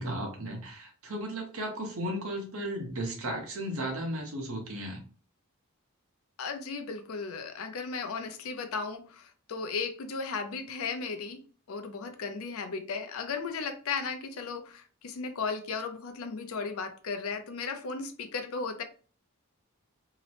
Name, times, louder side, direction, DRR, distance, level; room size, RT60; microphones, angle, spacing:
voice 1, 0.0-5.0, right 1 dB, 70° right, 0.9 m, -35 dB
voice 2, 6.4-18.8, left 5 dB, 70° left, 0.5 m, -35 dB
2.8 x 2.0 x 2.8 m
head